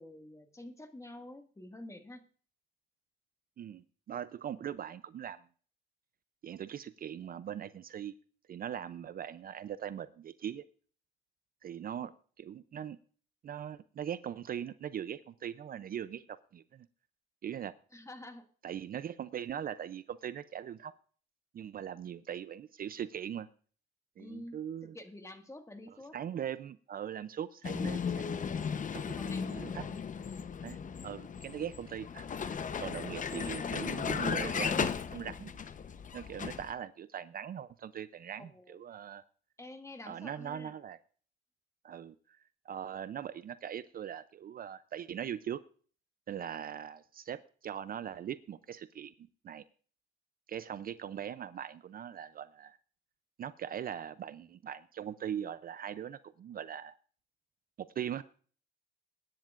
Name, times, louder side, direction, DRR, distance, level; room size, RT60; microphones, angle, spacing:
voice 1, 0.0-2.2 12.0-12.1 17.9-18.4 24.2-24.6 24.8-26.2 29.0-30.1 38.4-38.8 39.6-40.7, left 1 dB, 15° left, 5 dB, 1.8 m, -48 dB
voice 2, 3.6-5.4 6.4-8.1 8.5-10.6 11.6-13.0 13.4-16.9 17.4-17.7 18.6-20.9 21.5-23.5 24.2-25.0 25.9-29.2 29.5-29.8 30.6-30.8 31.0-35.5 36.1-39.2 40.1-41.0 41.8-42.4 42.6-45.6 46.3-49.6 50.5-52.8 53.4-56.9 57.8-58.2, right 9 dB, 45° right, 15 dB, 0.5 m, -41 dB
Vehicle, 27.6-36.7, left 6 dB, 40° left, 0.8 m, -36 dB
21.0 x 10.0 x 2.5 m, 0.43 s
cardioid pair, 90°, 20 cm